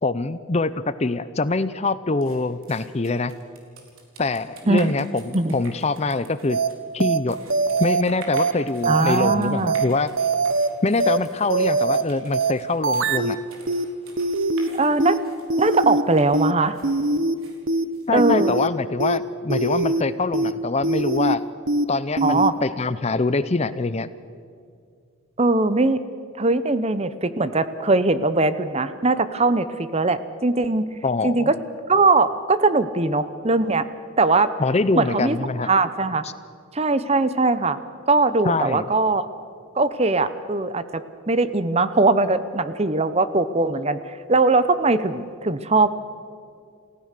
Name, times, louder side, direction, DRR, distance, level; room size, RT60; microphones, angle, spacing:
voice 1, 0.0-3.3 4.2-6.6 6.9-7.4 7.8-10.1 10.8-13.4 18.1-21.4 21.9-24.1 31.0-31.5 34.6-35.7 36.2-36.3 38.4-38.8, left 3 dB, 30° left, 14 dB, 0.5 m, -24 dB
sound 1, 2.2-18.6, right 3 dB, 80° right, 3.8 m, -46 dB
sound 2, 6.5-6.7 7.0-7.2 7.5-8.0 8.3-8.5 8.8-9.3 9.7-9.8 10.2-10.7 11.0-11.2 11.5-12.0 12.3-12.5 12.8-13.3 13.7-13.8 14.2-14.7 15.0-15.2 15.5-16.0 16.3-16.5 16.8-17.3 17.7-17.8 18.2-18.7 19.0-19.2 19.5-20.0 20.3-20.5 20.8-21.3 21.7-21.8 22.2-22.5, right 3 dB, 60° right, 0.9 m, -22 dB
voice 2, 8.9-9.8 14.8-15.2 15.6-16.8 18.1-18.6 22.2-22.5 25.4-26.0 26.4-30.9 31.2-31.5 31.9-33.8 34.2-34.5 35.0-35.4 35.6-36.2 36.7-37.8 38.1-39.2 39.7-45.9, right 3 dB, 30° right, 13 dB, 0.8 m, -20 dB
28.5 x 15.5 x 6.7 m, 2.2 s
head